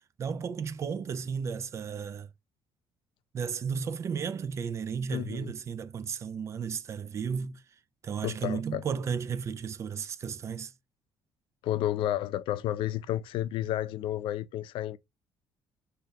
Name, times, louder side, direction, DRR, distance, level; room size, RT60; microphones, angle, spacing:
voice 1, 0.2-2.3 3.3-7.6 8.0-10.7, right 6 dB, 30° right, 0.4 m, -34 dB
voice 2, 5.1-5.5 8.2-8.8 11.6-15.0, left 13 dB, 70° left, 0.4 m, -31 dB
3.7 x 2.8 x 4.5 m
cardioid pair, 165°, 9 cm